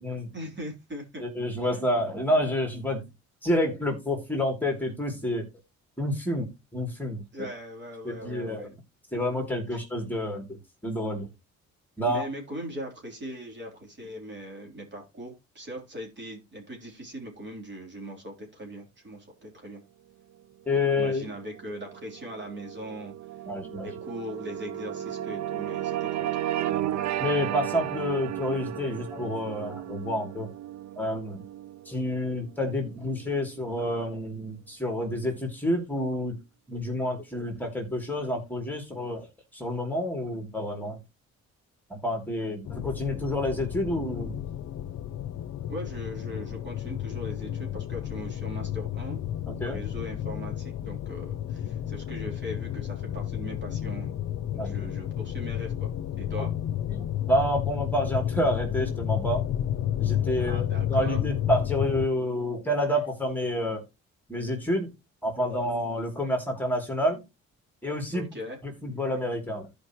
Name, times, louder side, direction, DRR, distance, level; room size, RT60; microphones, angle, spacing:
voice 1, 0.3-1.2 7.3-8.7 9.7-9.8 12.1-19.8 21.0-23.1 23.8-26.4 45.7-49.2 49.6-54.1 54.5-55.9 56.2-56.5 60.4-61.2 68.1-68.6, equal, 35° right, 1 dB, 3.5 m, -40 dB
voice 2, 1.2-3.0 3.4-5.4 6.0-7.2 8.0-8.7 9.1-11.3 12.0-12.3 20.7-21.3 23.5-23.9 27.2-30.5 31.0-31.4 31.9-36.3 36.7-39.3 39.5-41.0 41.9-44.4 49.5-49.8 54.6-54.7 56.9-59.4 60.0-63.8 64.3-64.9 65.2-67.2 67.8-68.2 68.6-69.7, left 1 dB, 5° left, 2 dB, 2.9 m, -29 dB
sound 1, 20.9-33.5, right 12 dB, 65° right, 0.6 m, -34 dB
sound 2, 42.6-62.1, left 11 dB, 65° left, 0.7 m, -31 dB
14.0 x 5.3 x 3.0 m, 0.24 s
cardioid pair, 90°, 30 cm